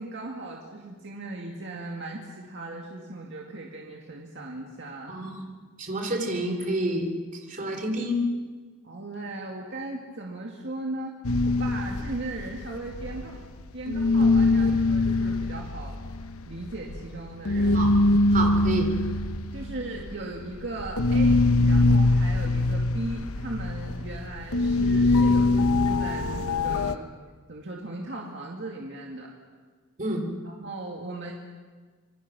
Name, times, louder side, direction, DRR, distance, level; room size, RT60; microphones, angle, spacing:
voice 1, 0.0-5.2 8.8-11.1 11.4-13.4 13.7-16.0 16.5-17.9 19.5-27.1 27.5-29.3 30.4-31.3, right 2 dB, 55° right, -1 dB, 2.3 m, -37 dB
voice 2, 5.1-5.4 5.8-7.1 7.5-8.3 17.7-17.9 18.3-18.9 30.0-30.2, equal, 35° right, 3 dB, 3.6 m, -28 dB
sound 1, 11.2-13.6 13.9-27.0, left 2 dB, 80° left, 1.0 m, -23 dB
26.5 x 23.0 x 6.1 m, 1.5 s
head